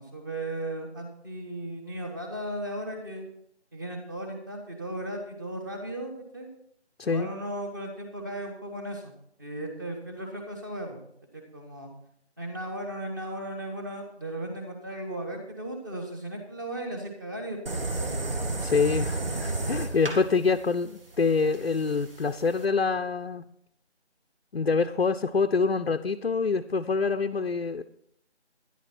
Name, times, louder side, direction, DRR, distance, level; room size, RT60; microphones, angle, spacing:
voice 1, 0.0-3.3 3.7-6.5 7.0-9.1 9.4-11.1 11.3-11.9 12.4-17.6 17.9-18.1 19.3-19.5 20.0-20.2, right 1 dB, 15° right, 2 dB, 1.4 m, -36 dB
sound 1, 17.7-22.6, right 2 dB, 55° right, 2.3 m, -32 dB
voice 2, 18.6-23.4 24.5-27.8, left 4 dB, 60° left, 6 dB, 0.7 m, -26 dB
13.0 x 11.0 x 4.4 m, 0.70 s
figure-of-eight pair, 170°, 35 cm